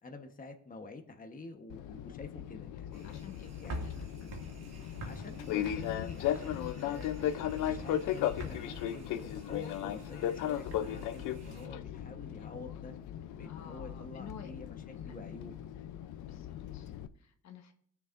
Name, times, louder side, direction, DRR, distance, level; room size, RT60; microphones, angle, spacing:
voice 1, 0.0-3.1 3.6-3.9 5.0-12.9 13.4-14.8 15.0-15.5, left 3 dB, 30° left, 5 dB, 1.2 m, -48 dB
Fixed-wing aircraft airplane, 1.7-17.1, left 11 dB, 90° left, 0.6 m, -37 dB
sound 1, 2.9-11.7, right 1 dB, 60° right, 2.3 m, -47 dB
voice 2, 3.0-4.3 13.4-14.5 14.9-15.2 16.2-17.7, left 6 dB, 65° left, 5 dB, 1.3 m, -52 dB
20.5 x 7.1 x 2.6 m, 0.63 s
cardioid pair, 90°, 30 cm